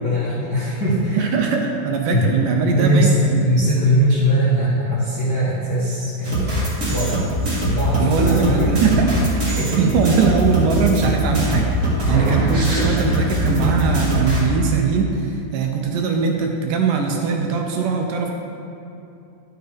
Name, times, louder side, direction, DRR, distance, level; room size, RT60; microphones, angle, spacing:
voice 1, 0.0-1.3 2.1-2.4 2.7-7.2 7.7-8.7 9.4-9.8 12.1-12.3, equal, 80° left, -8 dB, 0.9 m, -20 dB
voice 2, 1.2-3.5 8.0-9.2 9.8-18.3, right 5 dB, 80° right, 2 dB, 2.0 m, -21 dB
sound 1, 6.2-14.4, right 1 dB, 40° right, 1.0 m, -21 dB
11.0 x 6.8 x 3.4 m, 2.7 s
omnidirectional pair, 4.1 m